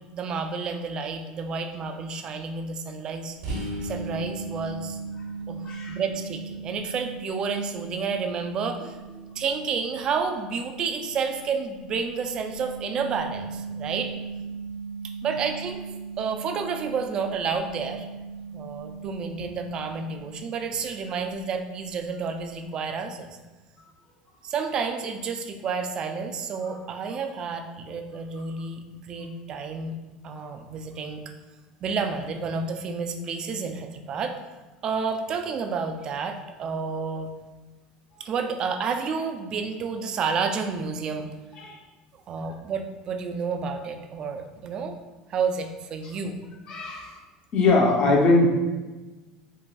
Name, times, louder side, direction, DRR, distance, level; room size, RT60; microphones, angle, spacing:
voice 1, 0.1-3.4 3.8-5.0 5.5-9.0 9.4-14.1 15.0-15.8 16.2-18.1 18.5-23.4 24.4-30.0 30.2-31.3 31.8-34.4 34.8-37.3 38.2-41.3 42.3-45.0 45.3-46.4, right 5 dB, 40° right, 6 dB, 0.3 m, -30 dB
sound 1, 3.4-20.9, right 4 dB, 80° right, 1.0 m, -38 dB
voice 2, 5.6-6.0 9.2-9.3 28.4-28.5 41.6-41.8 46.0-46.1 46.7-47.2 47.5-48.5, left 2 dB, 45° left, -1 dB, 0.7 m, -21 dB
3.8 x 2.3 x 2.3 m, 1.2 s
supercardioid pair, 125°, 2 cm